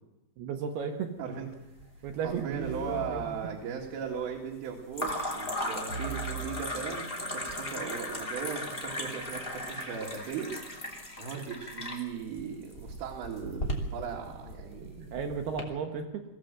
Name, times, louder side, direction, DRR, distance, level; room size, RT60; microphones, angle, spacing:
voice 1, 0.4-1.1 2.0-3.3 15.0-16.2, right 6 dB, 65° right, 4 dB, 2.9 m, -34 dB
sound 1, 1.8-2.5 2.8-3.5 4.9-15.6, left 1 dB, 20° left, 1.7 m, -37 dB
voice 2, 2.2-10.5 11.2-15.1, right 7 dB, 85° right, -2 dB, 4.7 m, -38 dB
sound 2, 2.6-4.2 5.9-7.6, right 4 dB, 35° left, 3.3 m, -41 dB
23.0 x 15.5 x 7.7 m, 0.98 s
omnidirectional pair, 5.6 m